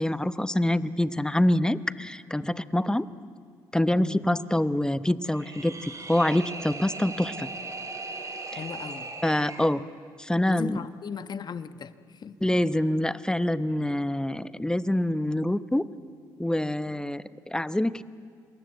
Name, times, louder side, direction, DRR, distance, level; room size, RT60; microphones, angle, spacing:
voice 1, 0.0-3.1 3.7-7.5 9.2-9.8 10.2-10.8 12.4-15.9 16.4-18.0, left 1 dB, 10° left, 14 dB, 1.0 m, -26 dB
sound 1, 5.3-9.7, right 3 dB, 35° right, 4.1 m, -38 dB
voice 2, 8.6-9.1 10.5-12.4, left 6 dB, 45° left, 12 dB, 1.2 m, -37 dB
27.5 x 21.0 x 8.2 m, 2.1 s
hypercardioid pair, 45°, 10 cm